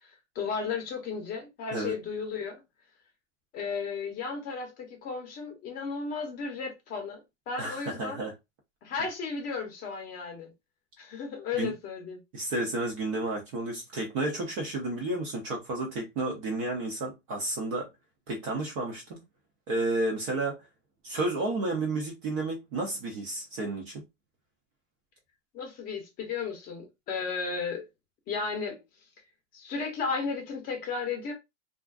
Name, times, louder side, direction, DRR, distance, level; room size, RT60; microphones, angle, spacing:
voice 1, 0.0-2.6 3.5-8.3 8.8-10.5 11.0-12.2 25.5-27.8 28.3-28.8 29.5-31.3, left 5 dB, 25° left, 0.7 m, -34 dB
voice 2, 7.6-8.3 11.6-11.7 12.3-17.9 18.3-19.0 19.7-20.6 21.0-24.0, right 2 dB, 25° right, 0.4 m, -31 dB
2.4 x 2.3 x 2.3 m
hypercardioid pair, 145°, 38 cm